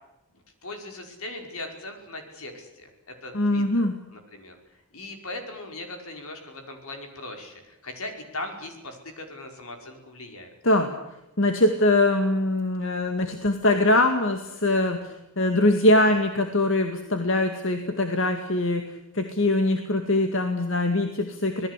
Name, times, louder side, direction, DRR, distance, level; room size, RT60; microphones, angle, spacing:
voice 1, 0.3-3.6 4.1-4.6 4.9-10.5, left 2 dB, 75° left, 4 dB, 5.4 m, -39 dB
voice 2, 3.3-4.0 10.6-10.9 11.4-21.7, left 1 dB, 60° left, 5 dB, 2.2 m, -22 dB
26.5 x 19.0 x 8.3 m, 0.91 s
head